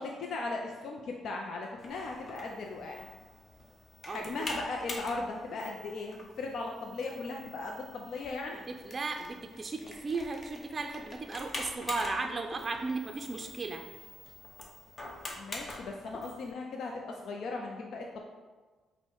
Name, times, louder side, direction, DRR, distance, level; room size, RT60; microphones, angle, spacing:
voice 1, 0.0-3.1 4.1-8.6 15.4-18.2, left 3 dB, 70° left, 1 dB, 0.4 m, -38 dB
sound 1, 1.8-16.5, left 2 dB, 40° left, 0.8 m, -45 dB
voice 2, 4.1-4.4 8.7-13.8, right 3 dB, 35° right, 4 dB, 0.4 m, -36 dB
5.3 x 2.1 x 4.6 m, 1.4 s
cardioid pair, 75°, 0 cm